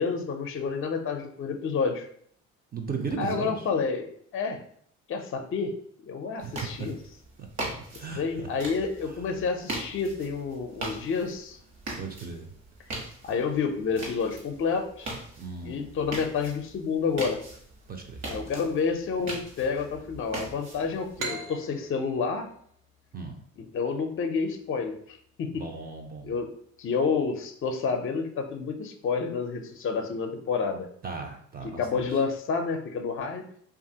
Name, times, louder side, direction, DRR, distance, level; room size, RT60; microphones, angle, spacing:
voice 1, 0.0-2.1 3.2-4.1 4.3-4.6 5.1-5.7 6.0-7.0 8.2-11.6 13.2-15.1 15.6-17.4 18.3-22.5 23.7-25.5 26.2-26.5 26.8-30.9 31.6-33.4, left 5 dB, 45° left, 6 dB, 0.5 m, -29 dB
voice 2, 2.7-3.6 6.4-6.9 7.4-7.5 8.0-8.5 9.1-9.2 12.0-12.5 15.4-15.9 17.9-18.2 23.1-23.4 25.5-26.4 31.0-32.2, right 5 dB, 30° right, 3 dB, 0.5 m, -36 dB
sound 1, 6.4-21.3, right 2 dB, 65° right, 1.2 m, -40 dB
sound 2, 21.2-24.6, right 3 dB, 85° right, 0.6 m, -40 dB
2.8 x 2.4 x 2.7 m, 0.63 s
cardioid pair, 90°, 30 cm